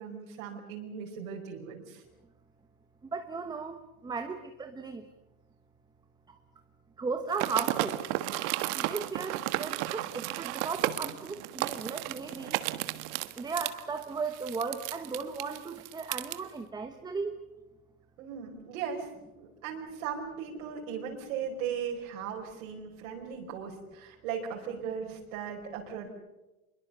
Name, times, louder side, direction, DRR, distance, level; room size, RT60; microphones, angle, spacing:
voice 1, 0.0-2.0 18.2-19.1 19.4-26.1, right 7 dB, 65° right, -1 dB, 5.0 m, -38 dB
voice 2, 3.0-5.1 6.3-6.4 7.0-8.0 8.8-12.6 13.3-17.4, right 4 dB, 10° right, 7 dB, 1.2 m, -36 dB
sound 1, 7.3-16.4, right 16 dB, 50° right, 1.5 m, -33 dB
26.5 x 22.5 x 6.9 m, 1.0 s
supercardioid pair, 135°, 44 cm